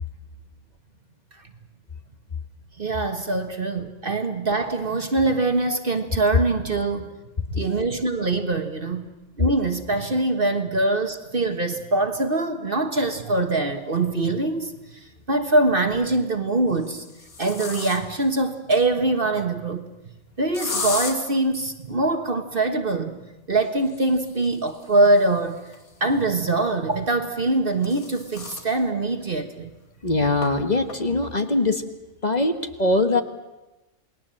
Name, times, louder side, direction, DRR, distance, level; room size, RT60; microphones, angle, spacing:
voice 1, 2.8-7.1 7.5-9.1 9.4-17.0 17.4-19.9 20.4-23.2 23.5-25.6 26.0-29.7, right 2 dB, 40° right, 6 dB, 1.5 m, -23 dB
sound 1, 14.2-14.3 15.7-16.1 16.7-18.3 20.5-21.2 23.7-26.4 27.4-28.7 29.2-29.3 29.6-29.7 30.4-30.5 30.9-31.3, left 3 dB, 75° left, 2.7 m, -35 dB
voice 2, 30.0-31.8 32.2-33.2, left 2 dB, 30° left, 7 dB, 1.4 m, -22 dB
29.0 x 20.0 x 7.6 m, 1.0 s
omnidirectional pair, 1.5 m